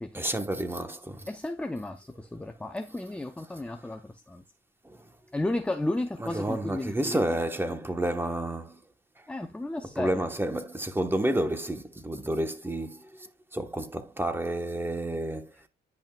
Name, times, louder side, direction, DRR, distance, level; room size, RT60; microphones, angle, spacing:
voice 1, 0.1-1.3 3.5-3.6 4.8-5.0 6.2-8.8 9.9-15.5, right 1 dB, 10° right, 1.1 m, -30 dB
voice 2, 1.3-4.4 5.3-7.2 9.3-10.2, left 2 dB, 5° left, 0.6 m, -33 dB
10.5 x 5.4 x 2.3 m
cardioid pair, 90°, 20 cm